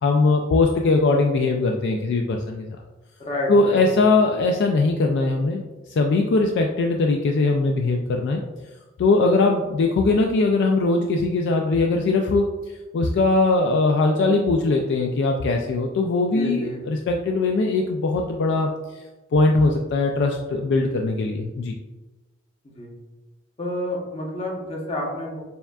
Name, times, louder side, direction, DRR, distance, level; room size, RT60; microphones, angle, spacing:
voice 1, 0.0-2.7 3.5-5.6 5.9-8.4 9.0-18.7 19.3-21.8, left 3 dB, 60° left, 2 dB, 0.3 m, -20 dB
voice 2, 3.2-3.8 16.3-16.8 22.6-22.9 23.6-25.4, left 1 dB, 30° left, -3 dB, 0.9 m, -29 dB
6.8 x 2.3 x 2.3 m, 1.2 s
head